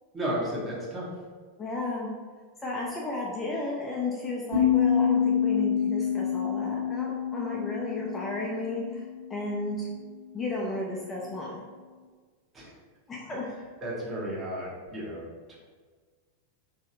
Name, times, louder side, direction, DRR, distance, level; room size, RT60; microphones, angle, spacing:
voice 1, 0.1-1.1 12.5-12.7 13.8-15.6, right 1 dB, 20° right, -5 dB, 1.0 m, -33 dB
voice 2, 1.6-2.1 2.6-9.0 9.3-9.9 10.3-11.5 13.1-13.5, left 2 dB, 15° left, -4 dB, 0.5 m, -33 dB
sound 1, 4.5-9.7, left 8 dB, 65° right, 0.9 m, -27 dB
3.1 x 2.6 x 2.7 m, 1.5 s
figure-of-eight pair, 90°, 0 cm